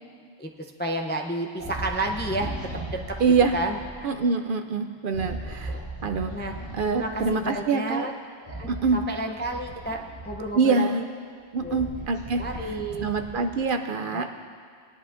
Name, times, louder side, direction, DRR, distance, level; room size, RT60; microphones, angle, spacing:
voice 1, 0.4-2.5 2.9-3.2 3.5-4.1 5.7-5.8 6.3-6.5 6.9-8.1 8.5-11.0 11.6-11.8 12.4-13.1 14.1-14.3, right 1 dB, 15° left, 2 dB, 0.3 m, -31 dB
sound 1, 1.6-3.9 5.1-7.4 8.4-10.7 11.3-13.7, right 1 dB, 15° right, 3.4 m, -37 dB
voice 2, 3.2-3.6 4.0-8.1 8.7-9.0 10.5-11.0 11.5-12.7 13.0-14.3, right 4 dB, 60° right, 6 dB, 0.6 m, -25 dB
20.0 x 11.0 x 2.5 m, 2.1 s
omnidirectional pair, 1.2 m